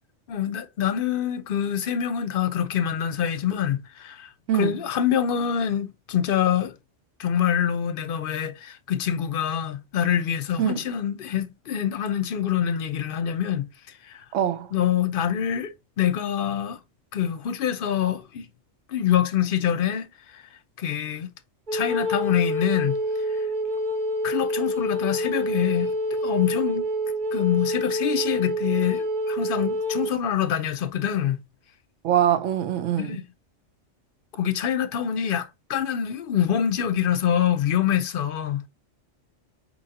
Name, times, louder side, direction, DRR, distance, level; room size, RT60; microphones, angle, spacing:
voice 1, 0.3-6.7 7.2-13.6 14.1-14.2 14.7-16.8 17.1-18.5 18.9-20.1 20.8-21.3 21.7-23.0 24.2-26.9 27.3-31.4 33.0-33.2 34.4-38.6, left 9 dB, 55° left, 0.7 m, -25 dB
voice 2, 14.3-14.7 32.0-33.2, right 11 dB, 85° right, 1.0 m, -23 dB
Wind instrument woodwind instrument, 21.7-30.1, equal, 45° right, 0.9 m, -27 dB
5.4 x 2.9 x 2.8 m
omnidirectional pair, 1.2 m